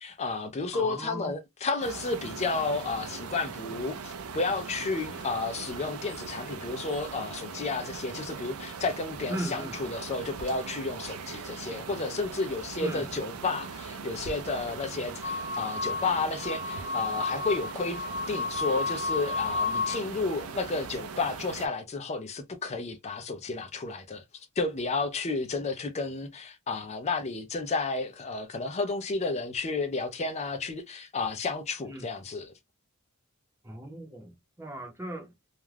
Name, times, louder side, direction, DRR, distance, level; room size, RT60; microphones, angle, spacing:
voice 1, 0.0-18.0 18.3-24.2 24.6-32.5, left 3 dB, 30° left, 0.4 m, -32 dB
voice 2, 0.7-1.3 9.3-9.8 12.8-13.1 31.8-32.1 33.6-34.3 34.6-35.3, right 1 dB, 10° right, 0.7 m, -37 dB
sound 1, 1.8-21.7, right 5 dB, 90° right, 0.5 m, -40 dB
sound 2, 15.2-20.0, left 4 dB, 85° left, 0.7 m, -32 dB
2.4 x 2.2 x 3.2 m
head